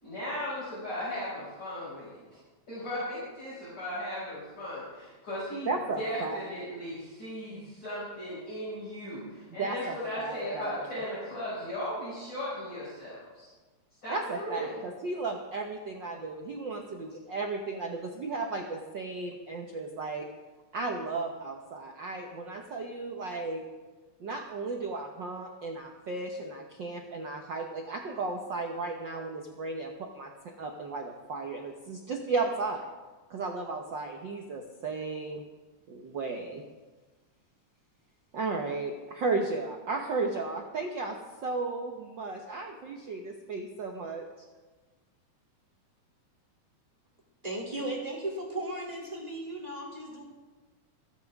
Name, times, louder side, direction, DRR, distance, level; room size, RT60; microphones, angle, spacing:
voice 1, 0.0-2.2 2.7-5.7 6.0-13.5 14.0-14.9, equal, 35° left, -11 dB, 6.3 m, -37 dB
voice 2, 5.7-6.4 7.5-7.7 9.6-10.9 14.1-20.3 20.7-23.6 24.2-30.3 30.6-32.9 33.3-35.4 35.9-36.6 38.3-41.2 41.4-44.2, right 3 dB, 70° right, 2 dB, 1.1 m, -34 dB
voice 3, 47.4-50.2, right 1 dB, 15° right, -2 dB, 2.4 m, -36 dB
26.5 x 9.5 x 3.5 m, 1.3 s
omnidirectional pair, 3.4 m